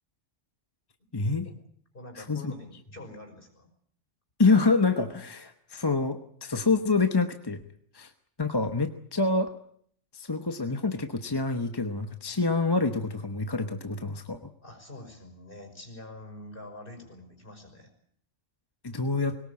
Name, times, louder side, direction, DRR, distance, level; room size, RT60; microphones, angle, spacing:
voice 1, 1.1-1.5 2.2-2.5 4.4-7.6 7.9-8.1 8.4-9.5 10.1-14.4 18.8-19.4, left 3 dB, 20° left, 7 dB, 1.0 m, -26 dB
voice 2, 1.9-3.7 14.6-17.9, left 1 dB, 45° left, 4 dB, 6.0 m, -45 dB
22.0 x 19.0 x 8.6 m, 0.62 s
omnidirectional pair, 1.3 m